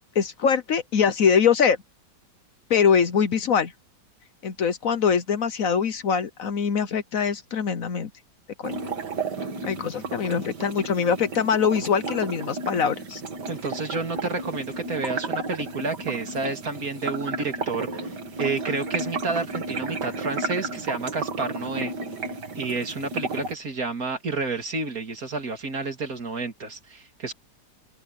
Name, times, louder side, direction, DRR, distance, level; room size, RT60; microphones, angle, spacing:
voice 1, 0.1-1.8 2.7-3.7 4.4-8.1 8.6-8.8 9.6-13.2, left 6 dB, 60° left, 1.3 m, -23 dB
sound 1, 8.6-23.5, right 3 dB, 90° right, 2.8 m, -33 dB
voice 2, 13.5-18.1 18.4-21.9 22.5-27.3, right 3 dB, 60° right, 3.0 m, -30 dB
open air
omnidirectional pair, 1.8 m